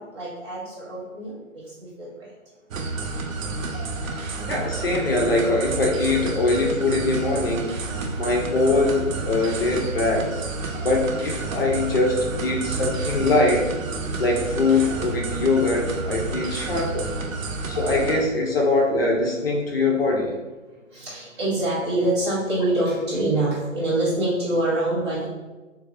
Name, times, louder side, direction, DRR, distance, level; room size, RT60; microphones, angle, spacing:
voice 1, 0.0-2.3 7.9-8.2 9.4-9.5 10.7-10.8 14.0-14.1 17.5-18.0 20.9-25.3, right 1 dB, 20° right, -8 dB, 0.8 m, -26 dB
sound 1, 2.7-18.2, right 3 dB, 80° right, 0.6 m, -30 dB
voice 2, 4.5-7.7 8.2-10.4 10.8-13.7 14.2-17.1 17.7-20.4, left 2 dB, 45° left, 0 dB, 0.6 m, -22 dB
3.8 x 2.6 x 2.6 m, 1.2 s
hypercardioid pair, 155°, 40 cm